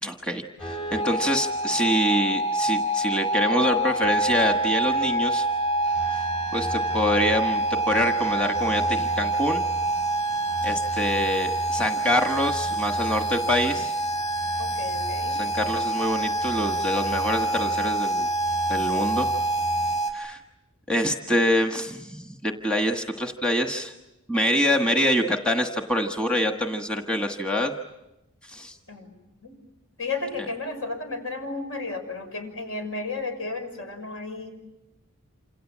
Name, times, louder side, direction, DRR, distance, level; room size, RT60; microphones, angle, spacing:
voice 1, 0.0-5.5 6.1-6.2 6.5-9.6 10.6-13.9 15.4-18.3 18.7-19.3 20.1-20.4 20.9-23.9 24.3-27.8 28.5-28.8, equal, 5° left, 4 dB, 1.4 m, -25 dB
sound 1, 0.6-20.1, right 1 dB, 30° left, 6.4 m, -26 dB
voice 2, 14.6-15.4 28.9-29.2 29.4-29.6 30.0-34.5, left 3 dB, 65° left, 6 dB, 6.3 m, -33 dB
28.0 x 27.5 x 7.5 m, 0.93 s
head